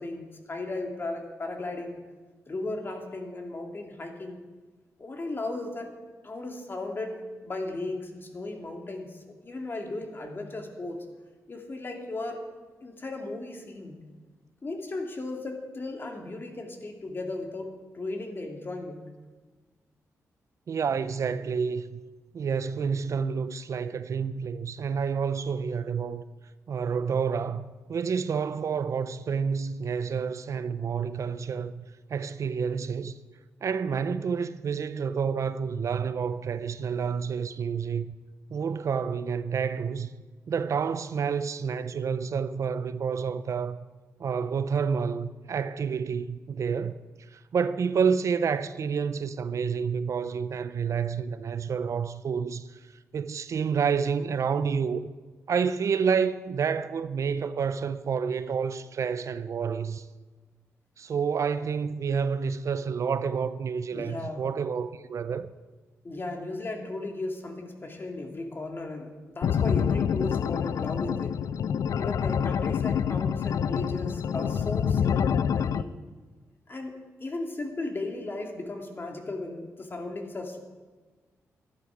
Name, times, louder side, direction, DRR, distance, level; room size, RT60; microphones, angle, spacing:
voice 1, 0.0-2.0 2.5-4.4 5.0-5.9 6.2-11.0 11.5-12.4 12.8-14.0 14.6-19.1 63.9-64.4 66.0-71.4 71.9-75.9 76.7-80.6, left 2 dB, 40° left, 2.2 m, -36 dB
voice 2, 20.7-22.0 22.3-26.2 26.7-31.8 32.1-33.1 33.6-38.1 38.5-40.1 40.5-43.8 44.2-47.0 47.3-52.8 53.1-55.1 55.5-60.1 61.0-65.5, right 6 dB, 60° right, 0.5 m, -29 dB
sound 1, 69.4-75.8, left 8 dB, 70° left, 0.4 m, -27 dB
11.5 x 11.5 x 5.0 m
cardioid pair, 65°, 6 cm